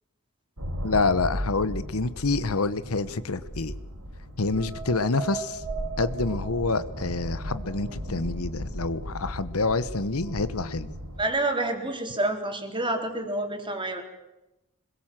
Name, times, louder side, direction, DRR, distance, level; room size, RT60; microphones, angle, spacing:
sound 1, 0.6-11.2, right 1 dB, 75° right, 5.3 m, -36 dB
voice 1, 0.8-3.7 4.4-5.6 6.0-10.9, left 3 dB, 70° left, 14 dB, 1.1 m, -27 dB
voice 2, 11.2-14.0, right 2 dB, 20° right, 4 dB, 3.7 m, -28 dB
26.5 x 21.5 x 7.6 m, 0.95 s
head